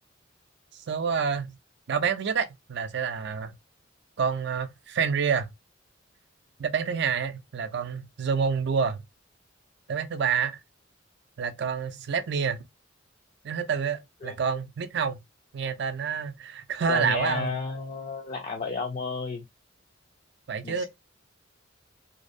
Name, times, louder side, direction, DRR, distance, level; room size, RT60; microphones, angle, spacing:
voice 1, 0.9-1.6 1.9-3.5 4.2-5.5 6.6-9.0 9.9-10.6 11.4-12.6 13.4-15.2 15.5-17.5 20.5-20.8, right 6 dB, 60° right, 0.4 m, -28 dB
voice 2, 16.9-19.5 20.6-20.8, left 4 dB, 35° left, 0.4 m, -32 dB
2.6 x 2.0 x 2.4 m
head